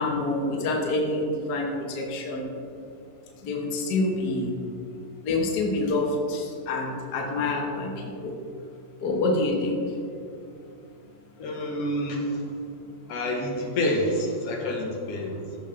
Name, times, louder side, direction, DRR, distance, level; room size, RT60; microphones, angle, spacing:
voice 1, 0.0-2.5 3.4-4.5 5.2-8.3 9.0-9.8, left 2 dB, 85° left, -1 dB, 0.8 m, -27 dB
voice 2, 11.4-12.4 13.1-15.6, left 1 dB, 65° left, 0 dB, 1.7 m, -28 dB
14.5 x 6.9 x 3.3 m, 2.6 s
omnidirectional pair, 3.9 m